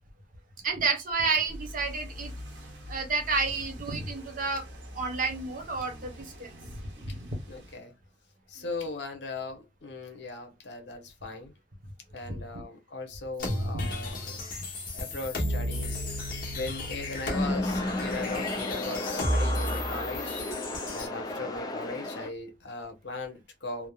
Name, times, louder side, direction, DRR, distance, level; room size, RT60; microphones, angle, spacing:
voice 1, 0.6-2.3 2.9-4.6 4.9-6.5 7.0-7.4 12.3-12.6 13.7-13.9, right 4 dB, 50° right, 0.9 m, -30 dB
sound 1, 1.5-7.7, equal, 75° right, 1.0 m, -45 dB
voice 2, 7.5-7.9 8.5-11.5 12.1-14.4 14.9-16.0 16.5-20.5 20.9-23.9, left 3 dB, 80° left, 0.9 m, -39 dB
sound 2, 13.4-21.1, left 1 dB, 55° left, 1.0 m, -32 dB
sound 3, 17.3-22.3, left 2 dB, 20° left, 0.5 m, -35 dB
3.4 x 2.0 x 2.3 m
head